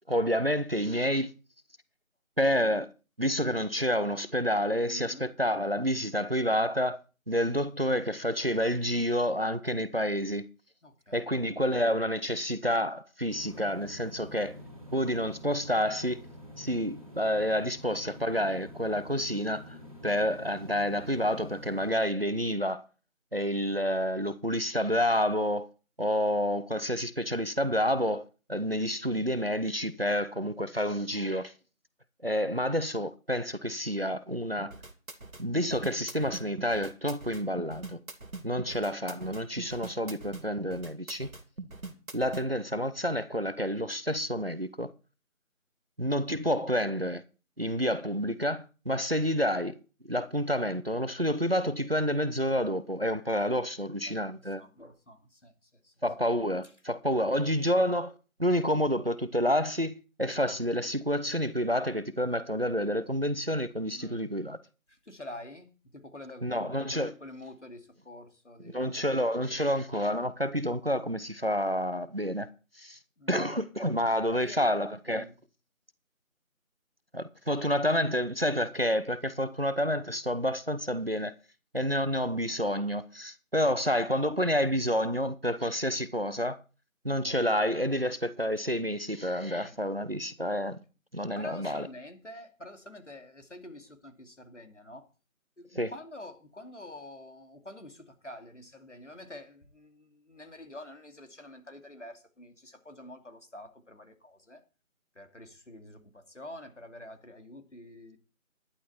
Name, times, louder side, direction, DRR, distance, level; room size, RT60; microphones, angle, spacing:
voice 1, 0.1-1.3 2.4-2.9 3.2-7.0 7.3-10.5 11.1-14.5 14.9-16.2 16.6-19.8 20.0-22.8 23.3-25.7 26.0-31.5 32.2-34.7 35.4-38.0 38.4-41.3 42.1-44.9 46.0-47.2 47.6-49.8 50.1-54.6 56.0-58.1 58.4-64.6 66.4-67.1 68.7-72.5 72.8-73.0 73.3-75.3 77.1-81.3 81.7-86.6 87.0-90.8 91.1-91.9 95.7-95.9, equal, 45° right, 0.7 m, -29 dB
voice 2, 4.9-5.3 10.8-11.3 54.1-55.5 55.8-55.9 57.1-57.2 63.9-64.3 64.9-69.0 73.2-73.4 74.3-74.7 75.1-75.3 79.4-79.5 89.6-89.8 91.3-95.1 95.6-104.6 105.1-108.2, left 1 dB, 60° left, 2.7 m, -47 dB
sound 1, 13.3-21.9, left 1 dB, 25° right, 2.8 m, -47 dB
sound 2, 34.6-42.4, right 3 dB, 75° right, 2.2 m, -42 dB
12.5 x 11.0 x 4.2 m
figure-of-eight pair, 180°, 41 cm